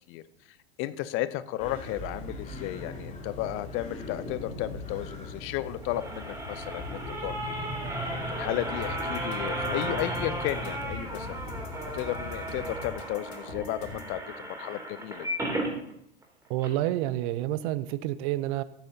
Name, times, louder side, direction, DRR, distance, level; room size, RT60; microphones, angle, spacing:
voice 1, 0.8-7.7 8.3-11.4 11.9-15.3, left 15 dB, 40° left, 16 dB, 0.6 m, -34 dB
sound 1, 1.6-12.8, left 1 dB, 20° left, 3.4 m, -39 dB
sound 2, 5.6-15.7 16.2-16.3 16.6-16.7, right 1 dB, 10° right, 3.0 m, -35 dB
sound 3, 8.8-14.1, left 2 dB, 75° left, 2.8 m, -44 dB
voice 2, 16.5-18.6, right 14 dB, 50° right, 15 dB, 0.7 m, -29 dB
18.0 x 9.0 x 2.8 m, 0.73 s
figure-of-eight pair, 90°, 32 cm